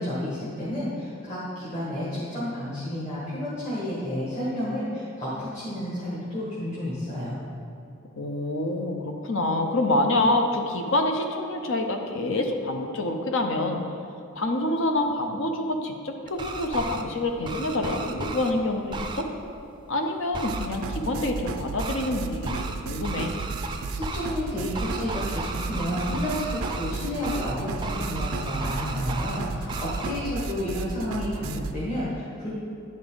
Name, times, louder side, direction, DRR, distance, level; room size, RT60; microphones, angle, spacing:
voice 1, 0.0-7.4 23.7-32.5, left 1 dB, 35° left, -9 dB, 1.6 m, -31 dB
voice 2, 8.2-13.8 14.4-19.3 19.9-22.6 22.8-23.3, left 2 dB, 60° left, 4 dB, 0.8 m, -26 dB
sound 1, 16.3-17.0 17.4-18.5 18.9-19.2 20.3-20.7 21.8-22.1 22.4-22.8 23.0-24.3 24.7-26.9 27.2-27.5 27.8-29.4 29.7-30.1, right 3 dB, 20° right, 0.5 m, -34 dB
sound 2, 20.5-31.8, right 4 dB, 85° right, 0.5 m, -34 dB
10.5 x 5.4 x 3.9 m, 2.6 s
head